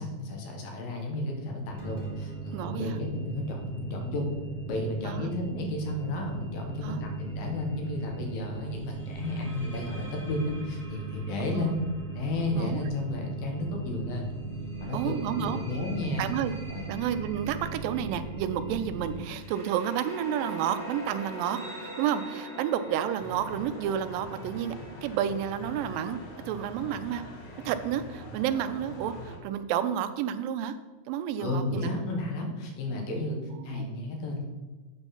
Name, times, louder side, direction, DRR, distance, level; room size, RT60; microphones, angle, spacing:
voice 1, 0.0-4.3 4.7-11.8 12.1-14.3 14.8-16.3 16.7-16.9 31.4-33.4 33.6-34.4, left 2 dB, 80° left, 1 dB, 3.0 m, -32 dB
sound 1, 1.7-19.2, right 4 dB, 25° right, 2.1 m, -38 dB
voice 2, 2.5-3.0 5.0-5.3 6.8-7.0 11.6-11.7 12.5-12.8 14.9-15.6 16.2-16.5 16.9-24.8 25.0-26.2 26.5-27.2 27.7-30.8 31.1-31.9 33.6-33.9, right 9 dB, 80° right, 11 dB, 2.2 m, -30 dB
sound 2, 7.2-7.5 9.0-13.7 14.5-25.0, right 1 dB, ahead, 1.4 m, -45 dB
sound 3, 23.2-29.4, left 1 dB, 65° left, 1.3 m, -43 dB
8.7 x 4.5 x 5.6 m, 1.3 s
omnidirectional pair, 4.1 m